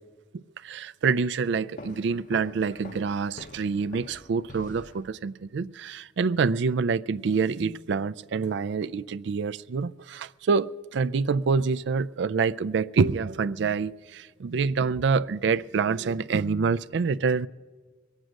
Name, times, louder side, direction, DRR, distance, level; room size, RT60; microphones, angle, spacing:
voice 1, 0.6-17.5, right 5 dB, 70° right, 0.4 m, -26 dB
sound 1, 1.8-5.5, left 2 dB, 45° left, 0.8 m, -46 dB
22.0 x 9.1 x 6.3 m
head